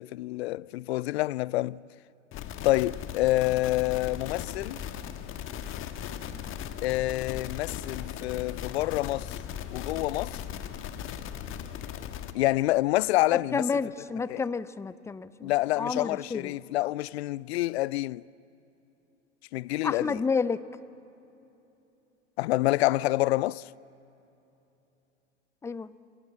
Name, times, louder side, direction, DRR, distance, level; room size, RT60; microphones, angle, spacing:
voice 1, 0.0-1.8 2.6-4.8 6.8-9.4 9.7-10.4 12.3-13.8 14.3-14.4 15.4-18.2 19.5-20.2 22.4-23.6, left 18 dB, 60° left, 0.5 m, -27 dB
sound 1, 2.3-12.3, left 9 dB, 35° left, 1.5 m, -38 dB
voice 2, 13.3-15.5 15.8-16.5 19.8-20.6 25.6-25.9, left 5 dB, 10° left, 0.5 m, -30 dB
28.0 x 21.5 x 7.6 m
figure-of-eight pair, 90°, 36 cm